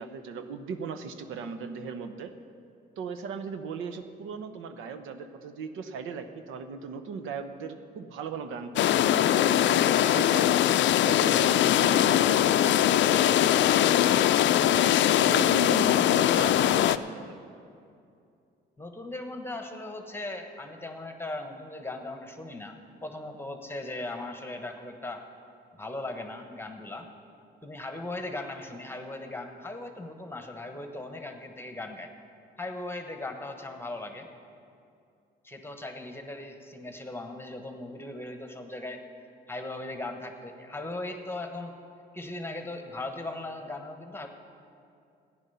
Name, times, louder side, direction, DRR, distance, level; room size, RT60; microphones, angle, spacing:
voice 1, 0.0-2.3 3.0-10.6 11.0-14.9 15.2-17.4, right 5 dB, 90° right, 9 dB, 0.8 m, -38 dB
sound 1, 8.8-17.0, left 12 dB, 65° left, 0.4 m, -22 dB
voice 2, 18.8-25.2 25.7-27.1 27.6-32.1 32.6-34.3 35.4-39.0 39.5-41.8 42.1-44.3, left 2 dB, 10° left, 5 dB, 1.2 m, -38 dB
14.0 x 9.9 x 5.6 m, 2.5 s
cardioid pair, 90°, 20 cm